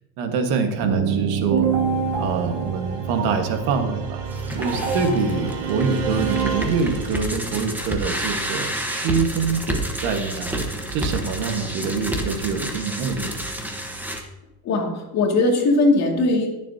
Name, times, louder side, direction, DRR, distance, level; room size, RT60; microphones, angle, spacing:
voice 1, 0.2-1.7 2.2-13.4, right 5 dB, 65° right, 6 dB, 1.6 m, -25 dB
sound 1, 0.8-7.6, right 6 dB, 80° right, 2.4 m, -26 dB
sound 2, 4.2-14.2, right 1 dB, 5° right, 1.1 m, -30 dB
voice 2, 14.6-16.5, left 2 dB, 40° left, 1 dB, 2.3 m, -19 dB
20.5 x 7.3 x 2.8 m, 1.1 s
cardioid pair, 155°, 40 cm